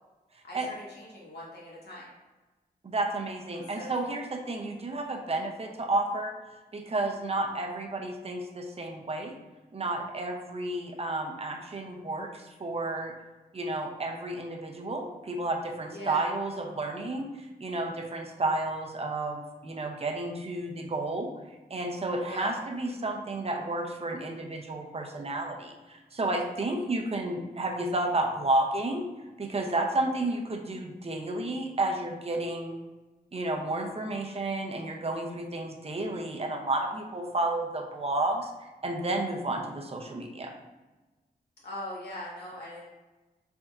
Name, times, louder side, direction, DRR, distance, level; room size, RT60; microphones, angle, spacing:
voice 1, 0.4-2.1 3.5-3.9 15.9-16.2 22.2-22.5 41.6-42.9, left 1 dB, 80° left, -6 dB, 1.4 m, -41 dB
voice 2, 2.8-6.3 6.7-9.3 9.7-13.1 13.5-17.3 17.6-21.3 21.7-29.0 29.4-32.8 33.3-38.5 38.8-40.5, right 2 dB, 40° right, 2 dB, 0.6 m, -31 dB
4.0 x 3.5 x 2.4 m, 1.2 s
wide cardioid pair, 95°, 17 cm